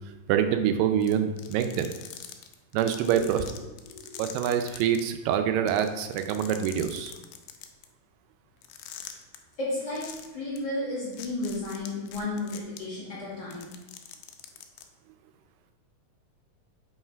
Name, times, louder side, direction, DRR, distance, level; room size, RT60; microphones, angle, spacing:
voice 1, 0.3-1.9 2.7-3.5 4.2-7.2, right 9 dB, 90° right, 7 dB, 2.3 m, -25 dB
sound 1, 1.0-5.0 5.3-5.4 5.7-7.9 8.6-9.4 10.0-10.3 10.6-10.7 11.1-12.8 13.4-14.8, left 10 dB, 80° left, 2.2 m, -43 dB
voice 2, 3.9-4.2 9.6-13.7, left 2 dB, 35° left, -8 dB, 2.1 m, -33 dB
5.6 x 5.6 x 4.6 m, 1.1 s
omnidirectional pair, 3.8 m